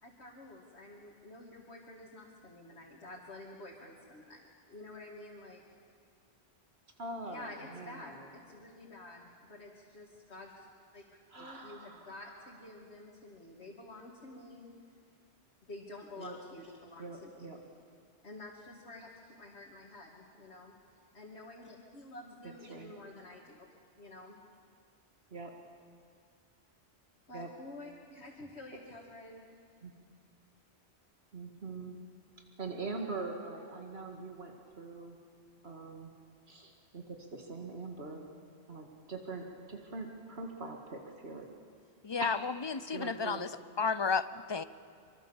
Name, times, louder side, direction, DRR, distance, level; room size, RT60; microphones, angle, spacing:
voice 1, 0.0-5.6 7.2-10.7 10.9-11.0 11.3-14.7 15.7-17.5 18.2-20.7 21.1-23.7 24.0-24.4 27.3-29.6, left 2 dB, 85° left, -3 dB, 2.5 m, -50 dB
voice 2, 7.0-8.3 11.3-12.1 16.2-16.4 17.0-17.6 22.7-22.9 25.3-25.5 27.3-27.5 29.8-29.9 31.3-32.0 32.6-35.2 35.6-36.1 36.5-38.2 38.7-41.5 42.2-43.5, right 3 dB, 70° right, 2 dB, 2.2 m, -43 dB
voice 3, 42.0-43.5 43.8-44.6, left 5 dB, 30° left, 14 dB, 0.6 m, -32 dB
24.5 x 24.0 x 7.2 m, 2.2 s
omnidirectional pair, 1.1 m